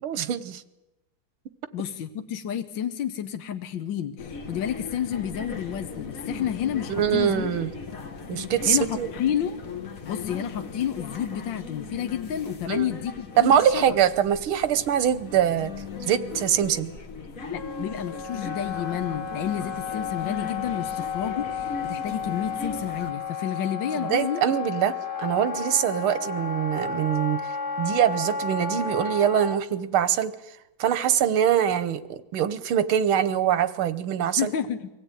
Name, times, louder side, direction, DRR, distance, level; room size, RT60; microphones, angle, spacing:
voice 1, 0.0-0.6 6.9-7.7 8.3-9.1 12.7-12.9 13.4-15.7 16.0-16.9 23.9-30.3 30.8-34.5, right 9 dB, 90° right, 12 dB, 1.8 m, -23 dB
voice 2, 1.7-7.4 8.7-9.6 10.0-13.8 17.5-24.4 34.4-34.9, left 9 dB, 65° left, 7 dB, 1.6 m, -30 dB
sound 1, 4.2-23.1, left 5 dB, 45° left, 1.5 m, -38 dB
Wind instrument woodwind instrument, 17.5-29.6, left 5 dB, 85° left, 2.3 m, -32 dB
24.0 x 16.5 x 9.1 m, 1.0 s
omnidirectional pair, 2.3 m